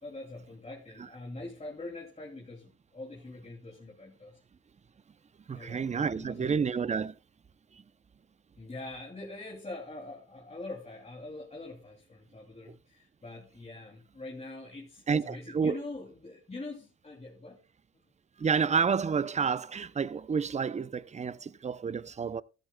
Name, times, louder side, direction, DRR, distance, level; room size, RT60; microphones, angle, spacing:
voice 1, 0.0-4.4 5.5-6.8 8.6-17.6, left 2 dB, 20° left, 2.6 m, -44 dB
voice 2, 5.5-7.1 15.1-15.8 18.4-22.4, right 6 dB, 25° right, 0.5 m, -29 dB
13.0 x 13.0 x 2.2 m
cardioid pair, 90°, 30 cm